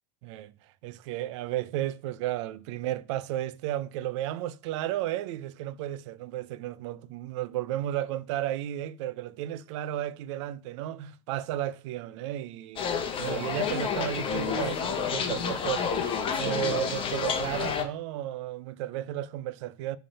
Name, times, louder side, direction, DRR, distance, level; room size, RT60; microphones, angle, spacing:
voice 1, 0.2-0.5 0.8-12.9 13.2-16.0 16.4-20.0, right 13 dB, 60° right, 0.6 m, -33 dB
sound 1, 12.8-17.8, left 6 dB, 30° left, 1.1 m, -29 dB
7.4 x 3.5 x 5.5 m
hypercardioid pair, 115°, 17 cm